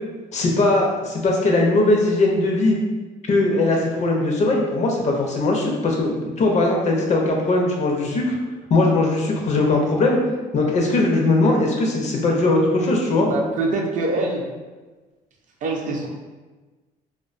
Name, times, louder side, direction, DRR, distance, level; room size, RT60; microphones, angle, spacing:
voice 1, 0.3-2.8 3.3-8.3 8.7-10.2 10.5-13.3, left 2 dB, 45° left, 0 dB, 0.5 m, -20 dB
voice 2, 13.2-14.5 15.6-16.1, right 2 dB, 50° right, 0 dB, 0.4 m, -24 dB
2.4 x 2.2 x 2.4 m, 1.3 s
cardioid pair, 110°, 17 cm